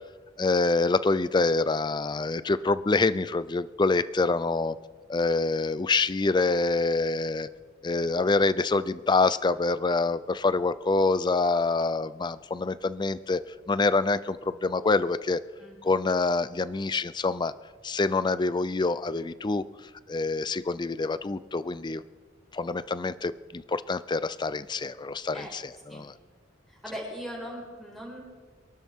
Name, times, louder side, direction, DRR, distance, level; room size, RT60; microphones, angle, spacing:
voice 1, 0.4-4.8 5.1-7.5 7.8-13.4 13.7-15.4 15.8-17.5 17.8-19.6 20.1-22.0 22.5-26.1, left 3 dB, 25° left, 15 dB, 0.4 m, -26 dB
voice 2, 26.7-28.2, equal, ahead, -5 dB, 5.0 m, -39 dB
27.0 x 12.0 x 3.6 m, 1.5 s
head